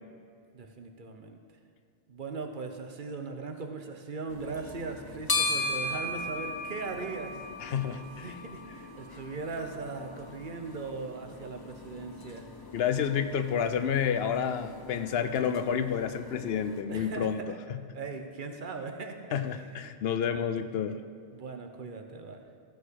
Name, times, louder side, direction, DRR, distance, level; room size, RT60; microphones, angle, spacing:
voice 1, 0.5-1.4 2.1-7.4 8.2-12.5 16.9-17.6 17.9-19.2 20.2-20.5 21.3-22.4, right 4 dB, 55° right, 5 dB, 1.0 m, -39 dB
sound 1, 4.3-16.8, left 2 dB, 25° left, 0.7 m, -38 dB
voice 2, 7.6-8.3 12.7-17.4 17.7-17.8 19.3-21.0, left 7 dB, 80° left, 10 dB, 0.9 m, -29 dB
14.5 x 4.8 x 6.4 m, 2.3 s
omnidirectional pair, 1.0 m